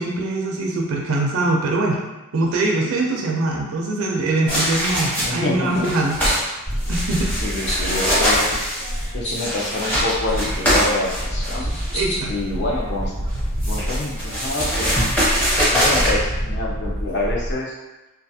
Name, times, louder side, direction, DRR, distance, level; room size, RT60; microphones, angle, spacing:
voice 1, 0.0-2.0 2.3-6.2 6.9-7.3 11.9-12.3, right 2 dB, 65° right, -1 dB, 0.4 m, -22 dB
sound 1, 4.5-5.5 5.7-6.4 6.8-12.0 13.3-16.1, equal, 10° left, 0.7 m, -22 dB
voice 2, 5.2-5.9 7.3-8.6 9.1-11.8 12.3-13.1 13.7-15.0 15.7-17.8, left 2 dB, 50° left, -2 dB, 0.5 m, -27 dB
sound 2, 5.6-5.8 6.2-6.4 6.7-7.3 7.6-7.9 8.7-9.5 9.9-10.7 11.3-12.2, equal, 30° left, 1.0 m, -32 dB
sound 3, 6.7-9.5 9.8-17.5, equal, 70° left, 1.4 m, -28 dB
2.3 x 2.3 x 2.7 m, 1.0 s
head